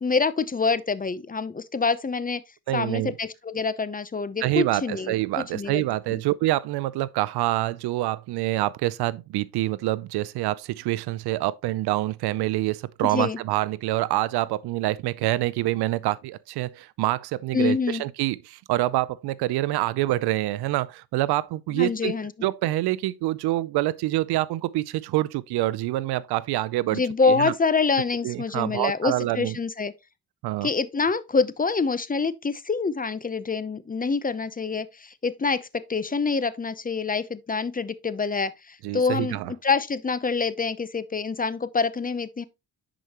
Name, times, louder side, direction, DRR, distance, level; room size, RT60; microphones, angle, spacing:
voice 1, 0.0-2.4 2.7-5.8 6.1-6.2 13.0-13.4 17.5-18.0 21.7-22.3 26.9-29.9 30.6-42.4, left 4 dB, 20° left, 0.7 m, -26 dB
voice 2, 2.7-3.1 4.4-22.1 22.4-27.0 27.3-27.5 28.2-29.5 30.4-30.7 38.8-39.5, right 16 dB, 80° right, 0.5 m, -26 dB
10.0 x 4.9 x 2.9 m
cardioid pair, 70°, 38 cm